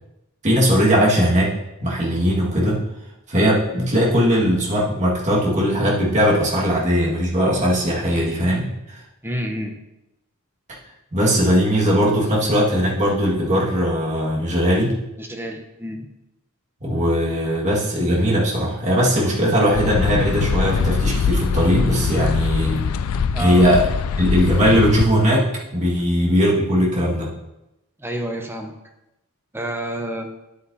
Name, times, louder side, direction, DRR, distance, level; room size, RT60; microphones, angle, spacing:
voice 1, 0.4-1.5 1.8-2.8 3.3-9.0 11.1-15.0 16.8-22.9 23.4-23.9 24.2-27.3, equal, 35° right, -4 dB, 1.8 m, -19 dB
voice 2, 9.2-9.8 15.2-16.1 23.3-23.7 28.0-28.7 29.5-30.3, right 1 dB, 10° right, 4 dB, 0.8 m, -29 dB
sound 1, 19.7-25.1, left 5 dB, 80° left, 0.4 m, -22 dB
9.3 x 8.4 x 2.7 m, 0.92 s
head